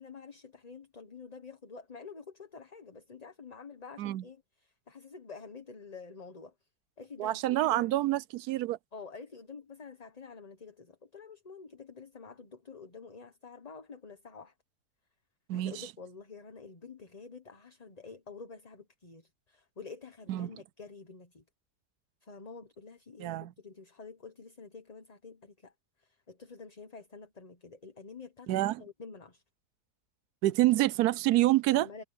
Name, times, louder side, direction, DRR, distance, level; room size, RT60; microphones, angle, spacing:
voice 1, 0.0-6.5 7.0-7.9 8.9-14.5 15.5-21.4 22.2-25.7 26.0-29.4 31.7-32.0, left 5 dB, 25° left, 1.3 m, -48 dB
voice 2, 7.2-8.8 15.5-15.9 20.3-20.5 23.2-23.5 28.5-28.8 30.4-31.9, right 16 dB, 80° right, 1.1 m, -27 dB
omnidirectional pair, 1.6 m